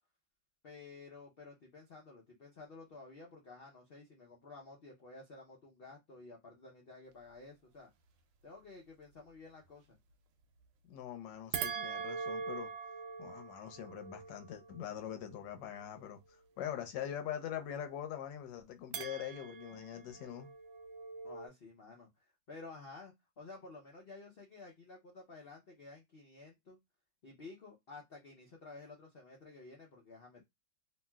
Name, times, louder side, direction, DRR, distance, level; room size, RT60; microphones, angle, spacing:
voice 1, 0.6-7.9 8.4-10.0 21.2-26.8 27.2-30.4, left 3 dB, 65° left, 0.5 m, -53 dB
voice 2, 10.9-12.7 13.2-20.5, left 10 dB, 90° left, 1.3 m, -43 dB
sound 1, 11.5-16.0 18.9-21.5, right 6 dB, 85° right, 1.3 m, -43 dB
3.1 x 2.6 x 2.2 m
omnidirectional pair, 1.9 m